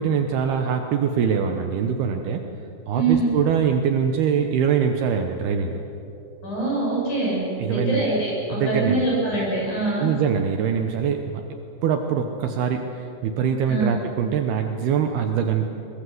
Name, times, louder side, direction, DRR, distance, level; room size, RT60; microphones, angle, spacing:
voice 1, 0.0-2.4 2.9-5.8 7.6-8.0 8.5-9.0 10.0-11.4 11.8-15.7, right 7 dB, 70° right, 5 dB, 2.8 m, -23 dB
voice 2, 2.9-3.3 6.4-10.1 13.7-14.0, right 2 dB, 45° left, -4 dB, 8.6 m, -24 dB
23.0 x 22.5 x 7.8 m, 2.8 s
omnidirectional pair, 5.1 m